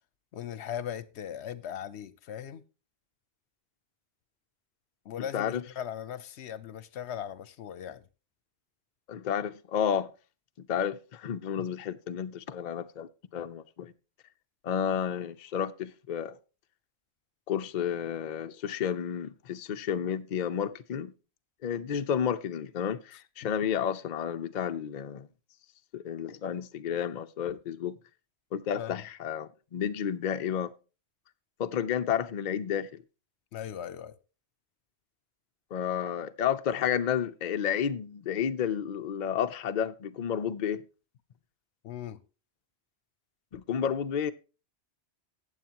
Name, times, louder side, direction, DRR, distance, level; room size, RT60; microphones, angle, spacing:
voice 1, 0.3-2.6 5.0-8.0 23.4-23.5 28.8-29.0 33.5-34.2 41.8-42.2, left 9 dB, 75° left, 0.9 m, -39 dB
voice 2, 5.2-5.6 9.1-10.1 10.7-13.9 14.6-16.4 17.5-21.1 21.6-25.3 25.9-28.0 28.5-30.7 31.6-33.0 35.7-40.8 43.5-44.3, left 8 dB, 50° left, 0.6 m, -31 dB
14.5 x 8.6 x 2.9 m
omnidirectional pair, 1.1 m